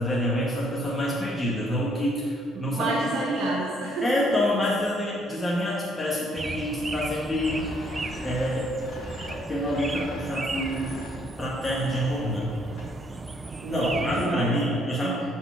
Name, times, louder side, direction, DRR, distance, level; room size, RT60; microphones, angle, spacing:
voice 1, 0.0-3.0 4.0-7.7 8.2-8.7 9.3-11.0 11.4-12.5 13.7-15.4, equal, 20° left, -7 dB, 1.6 m, -27 dB
voice 2, 2.5-4.1 4.5-4.6 13.6-15.3, right 2 dB, 65° right, -3 dB, 1.3 m, -29 dB
sound 1, 6.4-14.4, right 3 dB, 25° right, 0.4 m, -36 dB
sound 2, 7.4-13.1, left 1 dB, 85° left, 1.5 m, -42 dB
7.0 x 4.1 x 5.8 m, 2.3 s
supercardioid pair, 80°, 0 cm